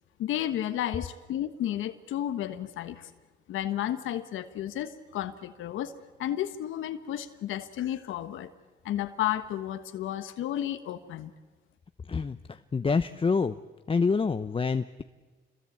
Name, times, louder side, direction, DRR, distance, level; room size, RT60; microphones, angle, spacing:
voice 1, 0.2-3.1 3.5-5.9 6.2-8.5 8.8-11.3, left 12 dB, 85° left, 10 dB, 1.4 m, -32 dB
voice 2, 12.1-13.5 13.9-15.0, left 5 dB, 25° left, 10 dB, 0.8 m, -27 dB
27.5 x 21.5 x 8.7 m, 1.3 s
cardioid pair, 90°, 20 cm